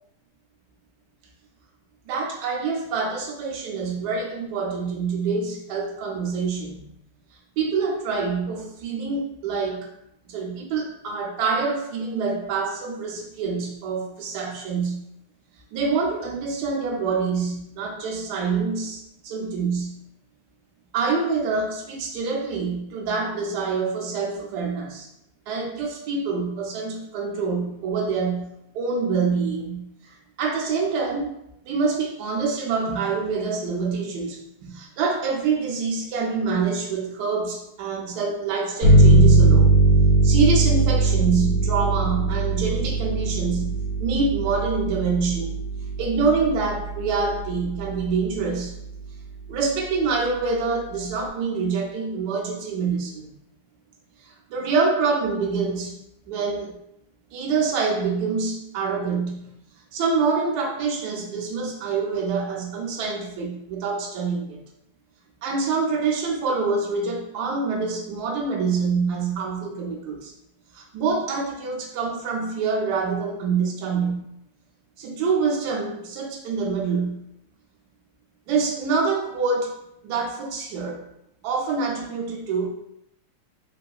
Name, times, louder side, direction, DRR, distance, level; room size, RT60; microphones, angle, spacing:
voice 1, 2.1-6.8 7.6-9.9 10.3-15.0 15.7-20.0 20.9-25.1 25.5-28.5 28.7-31.3 31.6-39.7 40.2-43.7 44.0-45.5 46.0-48.7 49.5-53.3 54.2-56.0 56.3-56.7 57.3-59.4 59.9-64.6 65.4-70.3 70.7-74.2 75.0-77.2 78.5-79.7 80.0-81.0 81.4-82.7, right 4 dB, 80° right, -1 dB, 0.9 m, -26 dB
sound 1, 38.8-48.1, right 3 dB, 65° left, 0.9 m, -20 dB
3.6 x 2.3 x 2.3 m, 0.79 s
omnidirectional pair, 2.3 m